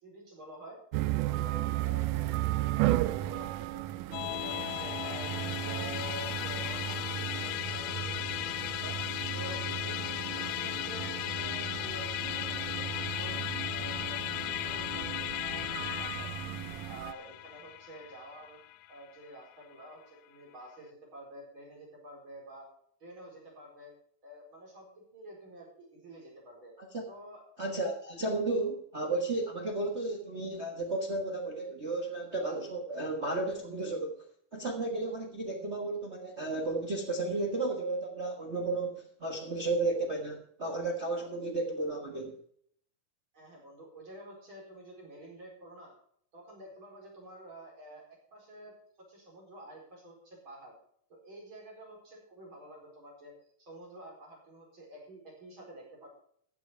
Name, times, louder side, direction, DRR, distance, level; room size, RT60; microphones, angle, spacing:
voice 1, 0.0-0.8 1.2-4.1 4.4-5.3 5.6-9.0 9.3-13.4 13.7-16.5 16.9-18.6 18.9-22.7 23.0-23.9 24.2-26.7 27.1-27.4 43.3-45.9 46.3-48.0 48.3-48.7 49.1-50.7 51.1-53.3 53.6-56.1, right 1 dB, 35° right, -1 dB, 5.3 m, -49 dB
sound 1, 0.9-17.1, right 15 dB, 80° right, 2.0 m, -35 dB
Musical instrument, 4.1-19.6, left 16 dB, 80° left, 1.8 m, -36 dB
voice 2, 27.6-34.2 34.5-42.3, right 2 dB, 55° right, 1 dB, 0.7 m, -33 dB
14.5 x 8.4 x 4.5 m, 0.63 s
omnidirectional pair, 3.8 m